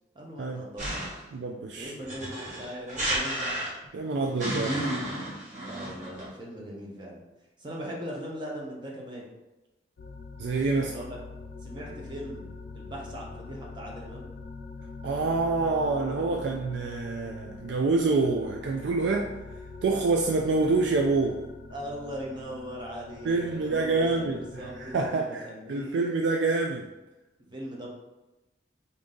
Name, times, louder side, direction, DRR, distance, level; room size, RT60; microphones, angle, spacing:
voice 1, 0.1-1.2 1.8-3.6 4.0-4.3 5.6-7.2 7.6-9.2 10.8-11.1 11.6-14.3 21.7-26.1 27.5-27.9, equal, 25° right, -2 dB, 0.8 m, -40 dB
sound 1, 0.8-1.3 2.1-4.0 4.4-6.3, right 1 dB, 40° right, 1.3 m, -31 dB
voice 2, 1.3-1.9 3.9-4.9 10.4-10.9 15.0-19.3 19.8-21.4 23.2-26.9, right 3 dB, 75° right, 1 dB, 0.3 m, -27 dB
sound 2, 10.0-25.1, left 3 dB, 60° left, 0.4 m, -43 dB
3.6 x 2.7 x 3.7 m, 1.0 s
head